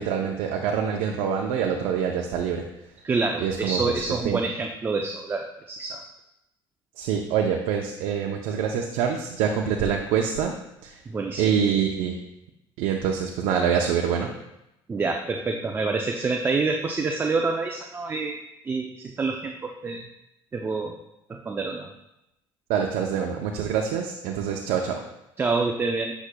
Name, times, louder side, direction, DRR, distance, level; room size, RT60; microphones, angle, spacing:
voice 1, 0.0-2.6 3.4-3.9 4.2-4.4 7.0-10.5 10.8-11.0 11.4-12.1 12.8-14.3 22.7-25.0, right 7 dB, 80° right, 2 dB, 0.6 m, -25 dB
voice 2, 3.0-6.0 11.1-11.5 14.9-18.4 18.6-20.1 20.5-21.0 21.3-21.9 25.4-26.1, right 3 dB, 20° right, 3 dB, 0.5 m, -27 dB
8.2 x 5.9 x 2.2 m, 0.88 s
cardioid pair, 115°, 10 cm